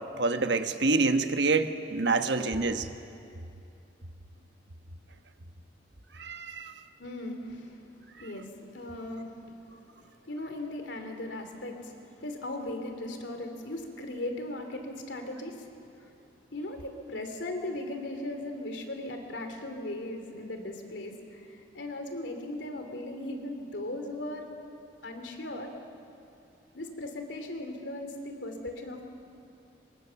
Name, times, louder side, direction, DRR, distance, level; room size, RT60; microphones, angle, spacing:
voice 1, 0.0-2.9 6.1-6.7, right 3 dB, 75° right, 8 dB, 1.2 m, -27 dB
voice 2, 7.0-7.8 8.1-9.8 10.2-15.7 15.9-16.0 16.5-24.5 25.0-25.7 26.7-29.0, left 1 dB, 85° left, 5 dB, 2.9 m, -38 dB
24.5 x 23.5 x 7.0 m, 2.6 s
head